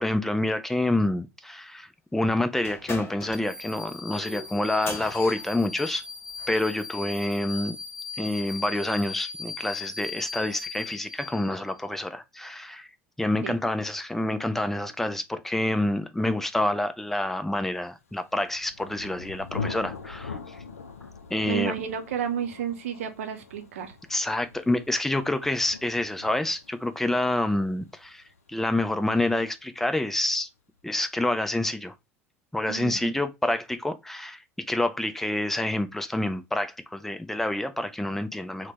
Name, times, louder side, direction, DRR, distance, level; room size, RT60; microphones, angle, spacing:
voice 1, 0.0-6.0 6.5-7.8 8.2-12.9 13.2-20.6 21.3-21.7 24.1-28.2 28.5-30.5 30.8-31.9 32.5-38.7, left 1 dB, 5° left, 0.4 m, -27 dB
sound 1, 2.6-6.7, left 4 dB, 30° left, 0.8 m, -41 dB
sound 2, 3.3-11.8, left 4 dB, 10° right, 0.8 m, -39 dB
Thunder, 18.2-29.7, left 4 dB, 80° left, 0.4 m, -42 dB
voice 2, 21.5-23.9 32.7-33.1, right 9 dB, 70° right, 0.6 m, -31 dB
2.7 x 2.1 x 3.3 m
figure-of-eight pair, 70°, 8 cm